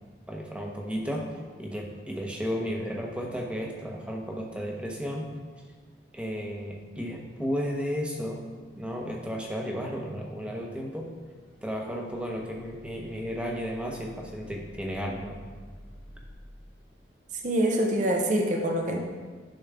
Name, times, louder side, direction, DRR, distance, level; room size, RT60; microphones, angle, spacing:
voice 1, 0.3-5.3 6.1-8.4 8.8-11.1 11.6-15.4, equal, 5° right, 0 dB, 0.9 m, -33 dB
sound 1, 11.0-16.3, equal, 70° left, 1.0 m, -51 dB
voice 2, 17.3-19.0, right 1 dB, 40° right, 1 dB, 0.8 m, -25 dB
10.5 x 6.2 x 3.6 m, 1.5 s
head